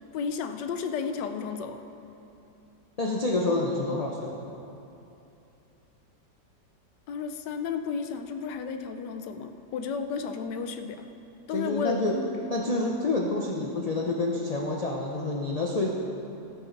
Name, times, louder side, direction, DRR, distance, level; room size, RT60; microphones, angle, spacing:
voice 1, 0.1-1.8 7.1-11.1 11.5-12.9, left 6 dB, 80° left, 7 dB, 1.3 m, -33 dB
voice 2, 3.0-4.4 11.5-12.1 12.5-15.9, left 2 dB, 50° left, -2 dB, 0.4 m, -28 dB
14.0 x 9.2 x 4.0 m, 2.8 s
omnidirectional pair, 1.8 m